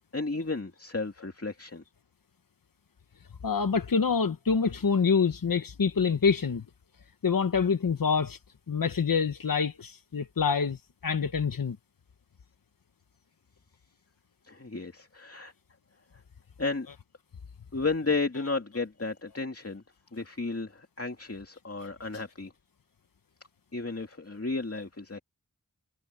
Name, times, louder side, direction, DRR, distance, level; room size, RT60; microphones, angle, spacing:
voice 1, 0.1-1.8 14.4-15.5 16.6-16.9 17.7-19.8 20.1-22.5 23.7-25.2, left 3 dB, 45° left, 2.5 m, -33 dB
voice 2, 3.4-6.6 7.2-8.4 8.7-10.8 11.0-11.8 22.1-22.2, left 5 dB, 80° left, 1.0 m, -26 dB
wide cardioid pair, 65°, 33 cm